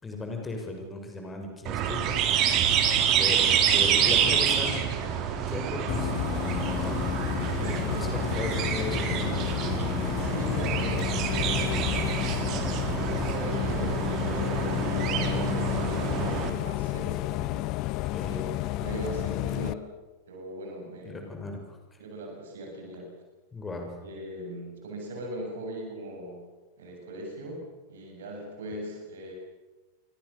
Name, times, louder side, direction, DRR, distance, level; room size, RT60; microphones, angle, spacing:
voice 1, 0.0-2.2 3.1-4.8 5.5-6.1 6.7-7.1 7.5-9.4 18.1-18.4 21.0-22.0 23.5-23.9 28.7-28.8, left 2 dB, 15° left, 4 dB, 6.4 m, -36 dB
sound 1, 1.7-16.5, right 8 dB, 35° right, 3.8 m, -27 dB
Bus, 5.9-19.7, left 16 dB, 40° left, 0.9 m, -31 dB
voice 2, 10.2-12.1 12.9-17.9 18.2-18.4 18.8-19.8 20.3-21.3 22.0-23.1 24.0-26.5 26.8-29.3, right 1 dB, 60° right, 1 dB, 7.5 m, -39 dB
28.5 x 24.5 x 7.0 m, 1.2 s
figure-of-eight pair, 90°, 0 cm